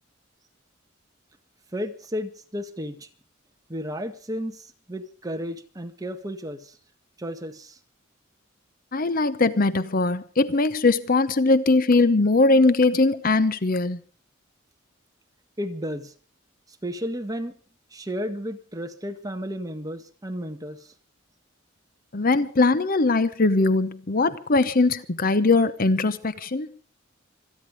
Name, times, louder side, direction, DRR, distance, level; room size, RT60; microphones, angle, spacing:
voice 1, 1.7-3.1 3.7-6.8 7.2-7.8 15.6-16.1 16.8-17.6 17.9-20.9, equal, 20° right, 1.8 m, -33 dB
voice 2, 8.9-14.0 22.1-26.7, left 3 dB, 45° left, 0.9 m, -21 dB
26.5 x 10.5 x 5.1 m
head